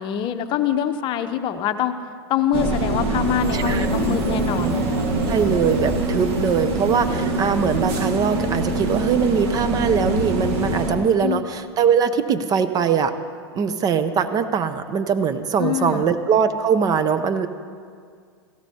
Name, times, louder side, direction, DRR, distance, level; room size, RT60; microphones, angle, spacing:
voice 1, 0.0-1.9 2.3-4.8 11.2-11.4 15.6-16.1, left 9 dB, 35° left, 9 dB, 0.8 m, -24 dB
sound 1, 2.5-10.9, right 2 dB, 45° right, 1.8 m, -24 dB
voice 2, 3.5-3.9 5.3-13.1 13.6-17.5, right 7 dB, 30° right, 11 dB, 0.6 m, -21 dB
17.5 x 16.0 x 2.8 m, 2.1 s
hypercardioid pair, 105°, 14 cm